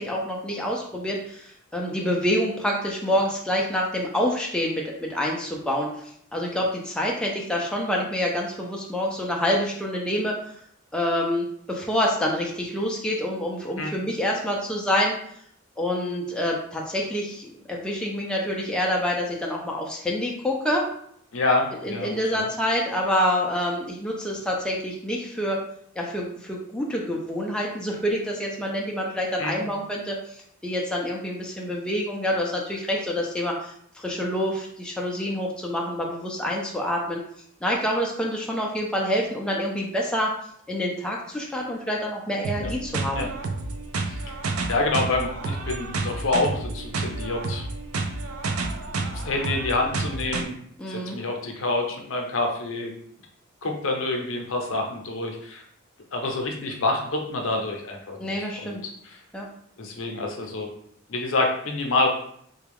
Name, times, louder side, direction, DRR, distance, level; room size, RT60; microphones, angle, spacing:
voice 1, 0.0-10.4 10.9-15.1 15.8-20.9 21.8-25.6 26.0-37.2 37.6-40.3 40.7-43.3 50.8-51.2 58.2-58.8 59.3-59.5, equal, 5° left, -2 dB, 0.4 m, -27 dB
voice 2, 21.3-22.5 29.4-29.6 42.6-42.7 43.1-43.3 44.0-44.2 44.7-47.7 49.2-50.5 50.9-52.9 53.6-55.6 56.1-58.8 59.0-59.2 59.8-60.7 61.1-62.1, left 2 dB, 65° left, 2 dB, 0.6 m, -27 dB
sound 1, 42.4-50.4, right 3 dB, 85° right, 0.4 m, -30 dB
3.4 x 2.3 x 3.4 m, 0.67 s
head